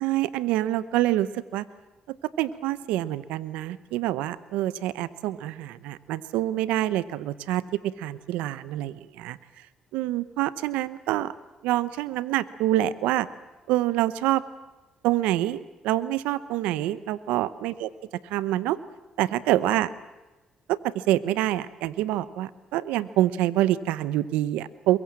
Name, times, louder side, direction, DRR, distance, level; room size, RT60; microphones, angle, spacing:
voice 1, 0.0-1.6 2.1-9.4 9.9-11.3 11.6-13.3 13.7-14.4 15.0-17.9 18.3-18.8 19.2-19.9 20.7-25.0, right 14 dB, 90° right, 16 dB, 0.8 m, -26 dB
23.0 x 22.5 x 7.5 m, 1.1 s
supercardioid pair, 75°, 2 cm